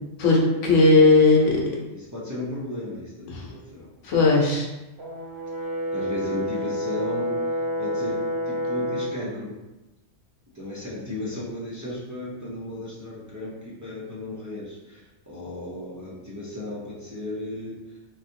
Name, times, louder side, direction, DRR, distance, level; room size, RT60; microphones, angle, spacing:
voice 1, 0.2-1.6 3.3-3.5 4.0-4.7, left 3 dB, 75° left, -2 dB, 1.1 m, -17 dB
voice 2, 1.9-3.9 5.9-7.4 7.8-9.5 10.5-17.8, left 1 dB, 25° right, -7 dB, 0.4 m, -34 dB
Brass instrument, 5.0-9.2, equal, 60° right, 0.9 m, -29 dB
3.3 x 2.4 x 2.7 m, 1.0 s
omnidirectional pair, 1.3 m